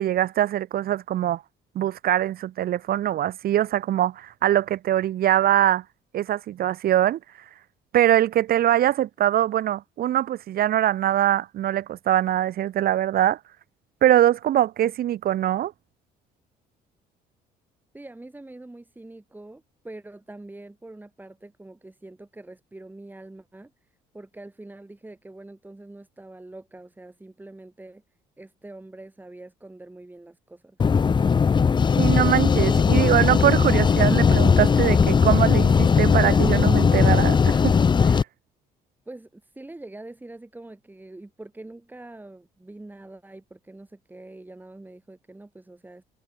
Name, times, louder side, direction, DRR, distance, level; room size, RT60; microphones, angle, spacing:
voice 1, 0.0-1.4 1.7-5.8 6.1-7.2 7.9-13.4 14.0-15.7 32.0-37.8 38.0-38.2, right 12 dB, 65° right, 3.2 m, -22 dB
voice 2, 17.9-28.0 28.4-30.8 39.1-46.0, right 2 dB, 10° right, 7.6 m, -44 dB
sound 1, 30.8-38.2, left 6 dB, 25° left, 0.8 m, -18 dB
cardioid pair, 110°, 17 cm